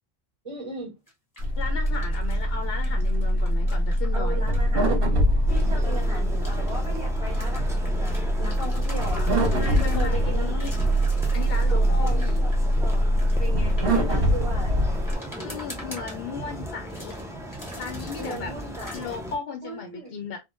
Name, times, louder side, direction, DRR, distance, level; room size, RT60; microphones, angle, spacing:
voice 1, 0.4-0.9 4.1-5.1 5.5-8.1 8.4-9.3 9.8-10.6 11.7-13.0 13.4-14.7 18.2-18.9 19.6-20.2, right 1 dB, 30° right, 1.3 m, -37 dB
sound 1, 1.1-2.5 2.8-4.6 5.5-6.8 7.3-10.2 10.6-11.7 12.1-14.4 15.1-16.5 16.9-17.2 17.5-18.4 18.7-19.1, equal, 20° left, 1.1 m, -44 dB
sound 2, 1.4-15.1, equal, 65° right, 1.2 m, -23 dB
voice 2, 1.6-4.4 9.5-10.7 11.3-12.4 15.4-17.1 17.8-18.5 18.8-20.4, left 6 dB, 70° left, 0.7 m, -35 dB
sound 3, 5.5-19.4, equal, 5° right, 0.4 m, -37 dB
3.6 x 2.1 x 2.3 m
omnidirectional pair, 1.1 m